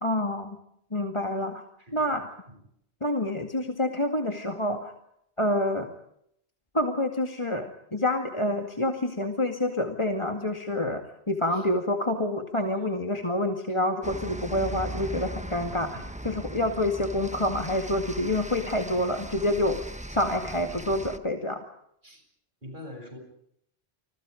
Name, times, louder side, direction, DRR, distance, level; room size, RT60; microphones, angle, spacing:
voice 1, 0.0-0.6 0.9-1.6 1.9-2.3 3.0-4.9 5.4-5.9 6.7-16.0 16.2-19.8 20.1-21.6, left 1 dB, 25° left, 4 dB, 2.2 m, -27 dB
voice 2, 1.8-2.2 2.5-2.6 11.5-11.6 15.9-16.1 22.0-22.2 22.6-23.2, left 1 dB, 45° right, 5 dB, 8.3 m, -44 dB
sound 1, 14.0-21.2, right 1 dB, 5° right, 1.2 m, -38 dB
30.0 x 26.5 x 5.2 m, 0.72 s
omnidirectional pair, 1.1 m